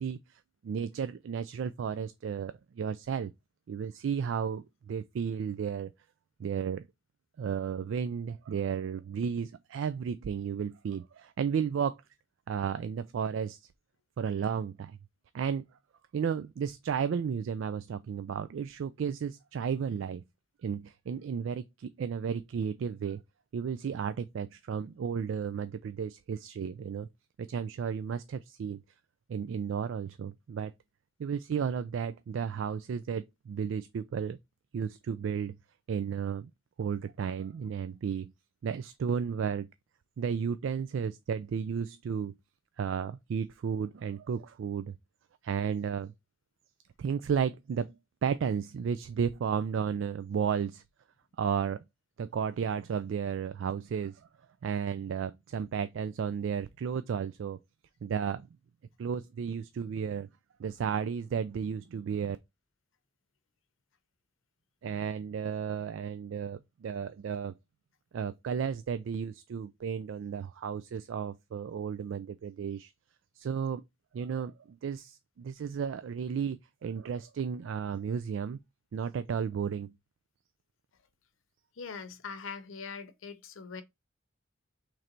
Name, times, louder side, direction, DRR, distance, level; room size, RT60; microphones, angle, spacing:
voice 1, 0.0-3.3 3.7-5.9 6.4-6.9 7.4-12.0 12.5-13.7 14.2-15.0 15.3-15.6 16.1-20.2 20.6-23.2 23.5-27.1 27.4-28.8 29.3-30.7 31.2-34.4 34.7-35.5 35.9-36.5 36.8-38.3 38.6-39.7 40.2-42.3 42.8-44.9 45.4-46.1 47.0-48.0 48.2-50.8 51.4-51.8 52.2-54.3 54.6-57.6 58.0-58.5 59.0-60.3 60.6-62.4 64.8-67.5 68.1-72.9 73.3-73.8 74.1-78.6 78.9-79.9, right 7 dB, 70° right, 0.3 m, -33 dB
voice 2, 81.8-83.8, left 5 dB, 90° left, 0.7 m, -42 dB
3.8 x 3.2 x 4.3 m
head